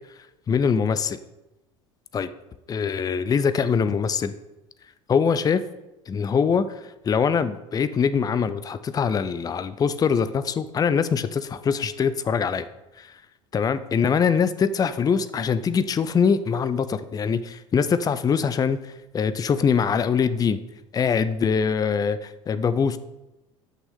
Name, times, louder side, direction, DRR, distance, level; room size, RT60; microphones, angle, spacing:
voice 1, 0.5-1.2 2.1-2.3 2.7-4.3 5.1-5.6 6.1-12.7 13.0-13.2 13.5-20.6 20.9-23.0, left 6 dB, 25° left, 13 dB, 0.6 m, -23 dB
9.7 x 6.2 x 6.5 m, 0.97 s
figure-of-eight pair, 70°, 16 cm